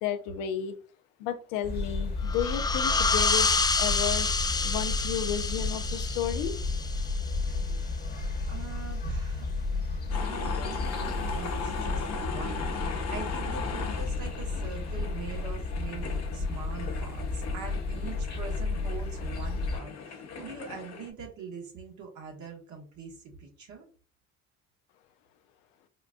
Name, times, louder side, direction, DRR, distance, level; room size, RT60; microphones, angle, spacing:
voice 1, 0.0-0.8 1.2-4.3 4.6-6.6, left 10 dB, 80° left, 9 dB, 0.6 m, -32 dB
sound 1, 1.6-19.8, left 3 dB, 30° left, 1.2 m, -32 dB
sound 2, 2.3-7.6, left 4 dB, 15° left, 0.3 m, -28 dB
voice 2, 8.5-9.5 10.2-23.9, right 5 dB, 60° right, 2 dB, 1.3 m, -42 dB
sound 3, 10.1-21.1, left 5 dB, 50° left, 0.9 m, -38 dB
4.5 x 2.4 x 2.3 m, 0.37 s
hypercardioid pair, 60°, 33 cm